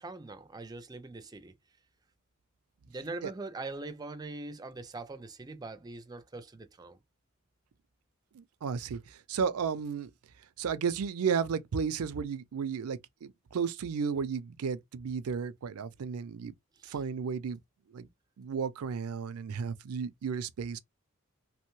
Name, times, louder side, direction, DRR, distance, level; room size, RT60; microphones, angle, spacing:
voice 1, 0.0-1.5 2.9-7.0 16.8-17.0, right 3 dB, 20° right, 0.4 m, -42 dB
voice 2, 8.3-9.0 9.3-10.1 10.6-16.5 16.9-17.6 17.9-18.1 18.4-20.8, right 6 dB, 90° right, 0.4 m, -33 dB
2.9 x 2.1 x 3.1 m
head